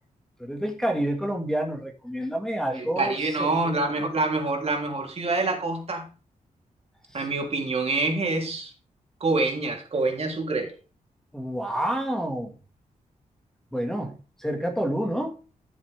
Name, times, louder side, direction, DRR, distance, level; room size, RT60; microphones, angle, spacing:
voice 1, 0.4-3.8 7.1-7.3 11.3-12.5 13.7-15.4, right 1 dB, 5° left, 2.1 m, -29 dB
voice 2, 2.8-6.0 7.1-8.7 9.2-10.7, right 3 dB, 45° right, 3.5 m, -26 dB
14.5 x 7.3 x 3.6 m
cardioid pair, 95°, 14 cm